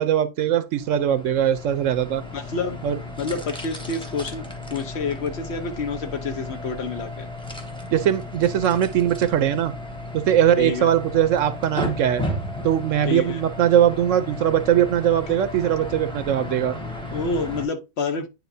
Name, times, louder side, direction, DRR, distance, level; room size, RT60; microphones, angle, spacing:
voice 1, 0.0-2.2 2.8-3.0 7.9-9.7 10.1-12.2 12.6-16.8, right 10 dB, 75° right, 1.0 m, -20 dB
sound 1, 0.7-17.6, left 2 dB, 5° left, 1.0 m, -34 dB
voice 2, 2.3-2.8 3.2-7.3 10.6-10.9 13.0-13.4 17.1-18.3, left 4 dB, 55° left, 1.1 m, -28 dB
9.5 x 4.4 x 2.7 m
omnidirectional pair, 1.4 m